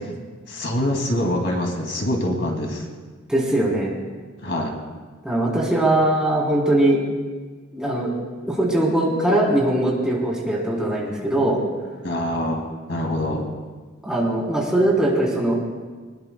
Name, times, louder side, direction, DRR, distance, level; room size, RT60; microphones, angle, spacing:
voice 1, 0.5-2.9 4.4-4.7 12.0-13.5, left 1 dB, 65° left, 1 dB, 2.4 m, -25 dB
voice 2, 3.3-3.9 5.2-7.0 7.7-8.1 8.4-11.6 14.0-15.6, right 1 dB, 5° right, -5 dB, 3.5 m, -21 dB
24.0 x 20.0 x 2.3 m, 1.4 s
head